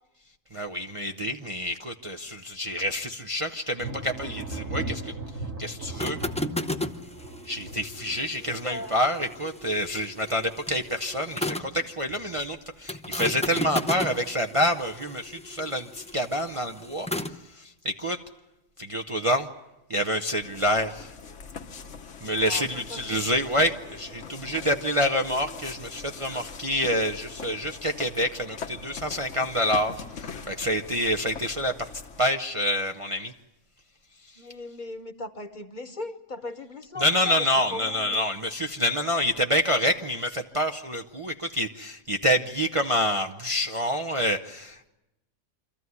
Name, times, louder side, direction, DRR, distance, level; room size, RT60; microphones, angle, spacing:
voice 1, 0.5-5.1 5.6-6.2 7.4-17.1 17.5-18.2 18.8-19.5 19.9-21.1 22.2-31.9 32.2-33.3 37.0-44.9, equal, 30° right, 3 dB, 0.7 m, -27 dB
Thunder, 3.8-10.2 10.6-11.2 11.6-12.4, right 2 dB, 80° right, 2.8 m, -38 dB
sound 1, 5.8-11.8 12.9-17.4, left 1 dB, 10° left, 0.4 m, -34 dB
voice 2, 8.4-9.0 22.4-23.2 34.4-38.3, left 2 dB, 40° left, 9 dB, 1.2 m, -38 dB
sound 2, 20.4-32.3, left 5 dB, 70° left, 1.4 m, -42 dB
25.5 x 14.0 x 9.5 m, 0.96 s
omnidirectional pair, 1.3 m